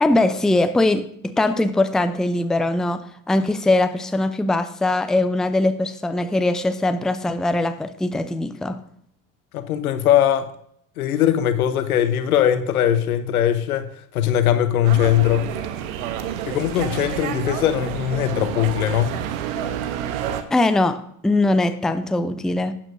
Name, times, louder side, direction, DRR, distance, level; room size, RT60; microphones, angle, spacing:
voice 1, 0.0-1.1 1.4-8.8 20.5-22.7, left 2 dB, ahead, 10 dB, 0.5 m, -21 dB
voice 2, 9.5-10.5 11.0-13.9 14.1-15.5 16.5-19.1, left 11 dB, 80° left, 11 dB, 1.0 m, -20 dB
sound 1, 14.8-20.4, right 9 dB, 70° right, 1.0 m, -29 dB
11.5 x 8.7 x 2.6 m, 0.67 s
hypercardioid pair, 75°, 43 cm